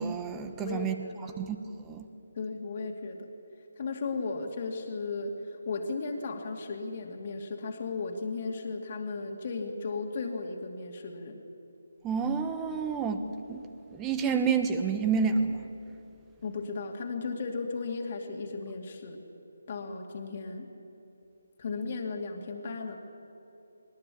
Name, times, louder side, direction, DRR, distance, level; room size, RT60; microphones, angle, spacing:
voice 1, 0.0-1.0 1.4-1.6 1.9-2.1 12.0-13.2 13.5-13.6 13.9-15.7, right 6 dB, 15° right, 8 dB, 1.3 m, -29 dB
voice 2, 0.6-1.5 2.4-3.3 3.8-5.3 5.7-11.4 16.4-19.2 19.7-20.7 21.6-23.0, left 4 dB, 45° left, 2 dB, 2.4 m, -35 dB
21.0 x 20.0 x 8.6 m, 2.8 s
figure-of-eight pair, 155°, 0 cm